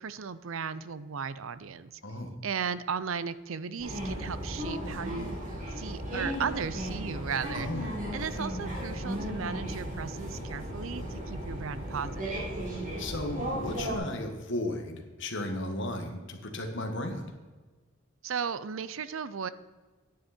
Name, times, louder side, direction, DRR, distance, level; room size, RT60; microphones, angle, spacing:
voice 1, 0.0-2.0 2.4-5.4 5.8-7.7 8.1-12.4 18.2-19.5, right 6 dB, 70° right, 15 dB, 0.6 m, -36 dB
voice 2, 2.0-2.4 7.5-7.9 13.0-17.3, left 1 dB, 60° left, 4 dB, 1.7 m, -35 dB
sound 1, 3.8-14.0, equal, 40° right, 3.6 m, -35 dB
10.5 x 9.8 x 4.3 m, 1.3 s
head